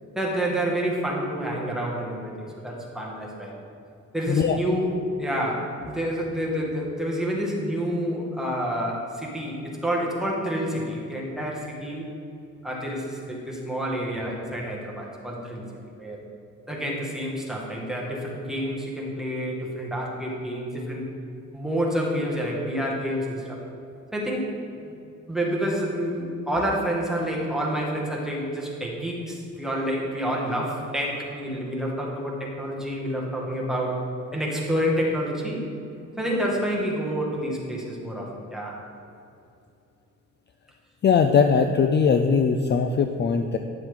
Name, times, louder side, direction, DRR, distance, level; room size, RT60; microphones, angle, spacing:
voice 1, 0.2-3.6 4.1-4.9 5.2-12.1 12.6-15.7 16.0-16.2 16.7-21.1 21.5-23.6 24.1-24.5 24.8-24.9 25.3-35.6 36.2-38.8, equal, ahead, -3 dB, 2.0 m, -28 dB
voice 2, 4.3-4.6 41.0-43.6, left 6 dB, 35° left, 6 dB, 0.5 m, -20 dB
9.9 x 7.1 x 3.8 m, 2.7 s
cardioid pair, 90°, 30 cm